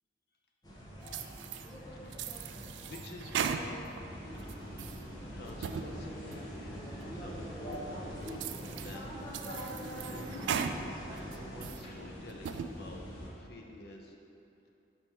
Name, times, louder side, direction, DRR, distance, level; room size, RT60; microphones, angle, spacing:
sound 1, 0.6-11.7, equal, 20° left, 0.9 m, -44 dB
sound 2, 1.1-1.7 2.1-4.0 4.4-5.0 5.5-5.9 6.3-6.4 7.0-7.1 7.7-7.8 8.3-9.0 9.3-10.8 11.2-11.8 12.3-12.7, right 7 dB, 80° right, 0.3 m, -37 dB
voice 1, 2.0-2.5 2.8-4.2 5.2-9.7 11.1-14.2, left 2 dB, 60° left, 1 dB, 0.7 m, -50 dB
sound 3, 4.0-13.3, equal, 85° left, 1.4 m, -47 dB
5.2 x 4.5 x 5.6 m, 2.8 s
head